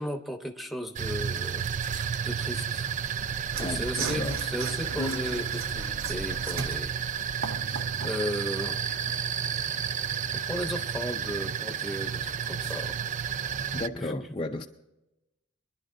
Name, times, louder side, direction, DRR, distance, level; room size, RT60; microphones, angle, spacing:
voice 1, 0.0-1.7 1.9-2.9 3.2-3.3 3.6-7.0 8.0-8.9 9.5-9.6 10.3-13.0 14.0-14.1, equal, ahead, 0.9 m, -35 dB
sound 1, 1.0-13.9, right 8 dB, 35° right, 0.3 m, -31 dB
Mechanisms / Sawing, 3.5-8.2, right 5 dB, 80° right, 0.8 m, -37 dB
voice 2, 3.6-4.4 7.7-7.9 13.7-14.7, left 2 dB, 25° left, 0.5 m, -34 dB
Acoustic guitar / Strum, 4.9-7.8, left 3 dB, 80° left, 0.7 m, -42 dB
23.0 x 11.0 x 2.7 m
head